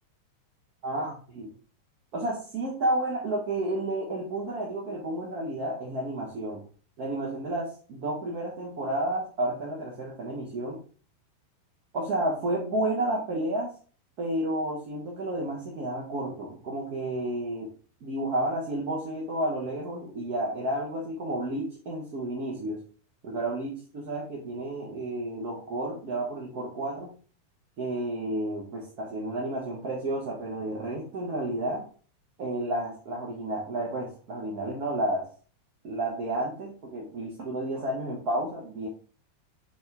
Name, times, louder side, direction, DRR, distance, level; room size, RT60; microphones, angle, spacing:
voice 1, 0.8-1.5 2.1-6.6 7.0-10.8 11.9-13.7 14.2-17.7 18.0-22.8 23.2-27.1 27.8-31.9 32.4-35.3 35.8-38.9, right 1 dB, 40° right, -3 dB, 1.0 m, -31 dB
4.1 x 2.5 x 3.4 m, 0.40 s
figure-of-eight pair, 90°, 0 cm